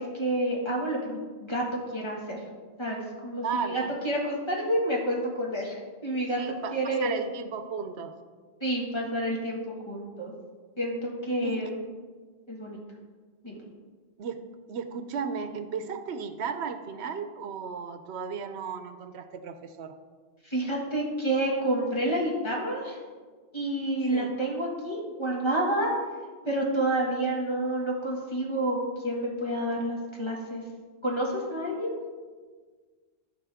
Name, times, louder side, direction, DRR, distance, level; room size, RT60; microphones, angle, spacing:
voice 1, 0.0-1.6 1.9-2.4 2.8-6.4 6.7-7.2 8.6-10.3 10.8-11.9 12.5-12.8 13.4-13.6 20.4-23.0 23.5-25.9 26.5-30.6 31.0-32.0, right 1 dB, 25° left, -2 dB, 1.7 m, -29 dB
voice 2, 3.4-3.9 6.3-8.1 11.4-11.7 14.2-14.4 14.7-19.9 24.1-24.3, right 6 dB, 80° right, 9 dB, 0.9 m, -35 dB
13.5 x 5.2 x 3.5 m, 1.5 s
omnidirectional pair, 1.1 m